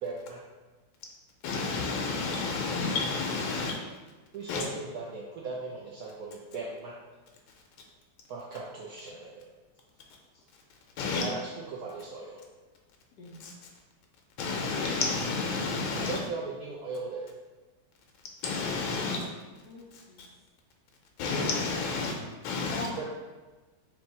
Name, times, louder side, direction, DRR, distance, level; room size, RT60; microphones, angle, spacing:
voice 1, 0.0-0.4 4.3-6.9 8.3-9.5 11.1-12.4 15.9-17.3 23.0-23.1, right 3 dB, 75° right, 0.8 m, -38 dB
voice 2, 1.4-3.7 4.5-4.6 11.0-11.2 14.4-16.2 18.4-19.2 21.2-22.1 22.4-22.9, left 4 dB, 90° left, 1.3 m, -30 dB
voice 3, 13.2-13.5 19.6-20.3 22.7-23.0, left 1 dB, 70° left, 1.1 m, -43 dB
3.6 x 3.0 x 4.0 m
omnidirectional pair, 2.1 m